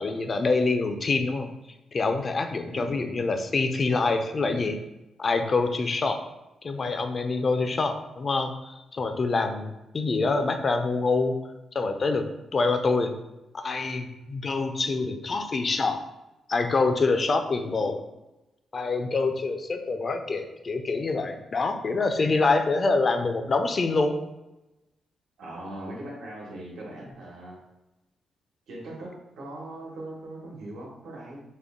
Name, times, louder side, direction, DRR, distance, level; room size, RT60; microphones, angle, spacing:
voice 1, 0.0-1.5 1.9-4.8 5.2-6.2 6.6-11.4 11.7-13.1 13.5-16.0 16.5-18.0 18.7-24.2, left 3 dB, 40° left, 6 dB, 0.5 m, -26 dB
voice 2, 25.4-27.6 28.7-31.4, right 1 dB, 85° right, -4 dB, 1.2 m, -40 dB
5.2 x 2.1 x 3.6 m, 0.99 s
cardioid pair, 105°, 0 cm